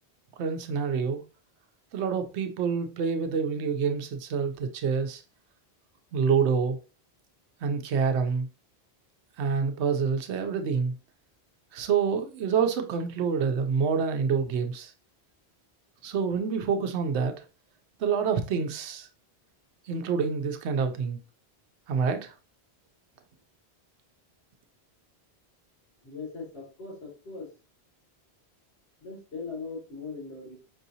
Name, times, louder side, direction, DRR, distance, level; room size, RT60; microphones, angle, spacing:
voice 1, 0.4-1.2 1.9-5.2 6.1-6.8 7.6-8.5 9.4-10.9 11.7-14.9 16.0-17.4 18.0-19.1 19.9-21.2 21.9-22.3, right 6 dB, 90° right, 0.9 m, -27 dB
voice 2, 26.0-27.5 29.0-30.5, left 4 dB, 75° left, 2.3 m, -39 dB
5.3 x 2.7 x 2.7 m
omnidirectional pair, 1.1 m